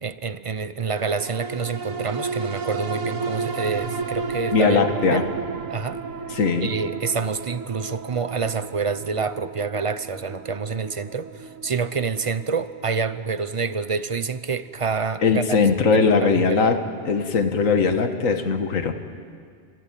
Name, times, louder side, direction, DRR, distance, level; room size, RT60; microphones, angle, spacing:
voice 1, 0.0-4.8 5.1-5.3 5.7-6.0 6.6-15.6 15.9-16.1 16.3-16.8, right 5 dB, 35° right, 13 dB, 0.6 m, -27 dB
sound 1, 0.9-15.6 16.0-16.1, right 4 dB, 80° right, 1.6 m, -33 dB
voice 2, 4.5-5.3 6.3-6.7 15.2-16.8 17.1-18.9, left 5 dB, 80° left, 7 dB, 1.8 m, -20 dB
29.5 x 15.5 x 9.1 m, 2.1 s
omnidirectional pair, 1.4 m